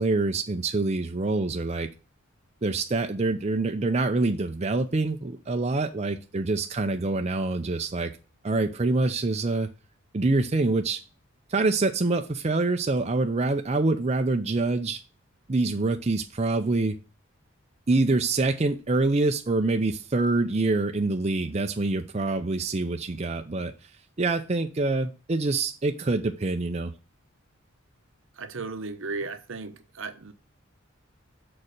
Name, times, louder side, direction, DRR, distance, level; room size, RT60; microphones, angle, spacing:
voice 1, 0.0-1.9 2.6-8.1 8.4-9.7 10.1-11.0 11.5-15.0 15.5-17.0 17.9-23.7 24.2-26.9, right 3 dB, 30° right, 0.6 m, -25 dB
voice 2, 28.4-30.3, right 3 dB, 65° right, 0.9 m, -35 dB
6.7 x 4.3 x 6.5 m
head